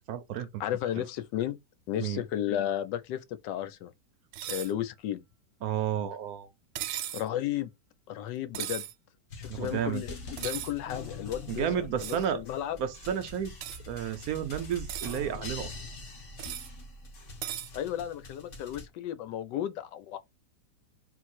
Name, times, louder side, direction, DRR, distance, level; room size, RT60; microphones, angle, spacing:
voice 1, 0.1-0.6 1.0-1.1 2.0-2.2 5.6-6.5 9.5-10.0 11.5-12.4 12.8-13.5 13.9-15.7, right 9 dB, 70° right, 0.9 m, -32 dB
voice 2, 0.6-1.6 1.9-3.9 4.5-5.2 7.1-7.7 8.1-8.8 9.4-12.8 17.7-20.2, left 11 dB, 85° left, 1.3 m, -33 dB
sound 1, 4.3-4.7 6.8-7.3 8.5-8.9 10.4-10.7 12.0-12.3 13.6-13.8 14.7-15.2 16.4-16.7 17.4-17.7, right 12 dB, 85° right, 1.2 m, -37 dB
sound 2, 9.3-18.9, left 2 dB, 55° left, 1.5 m, -44 dB
3.9 x 2.5 x 4.2 m
omnidirectional pair, 1.8 m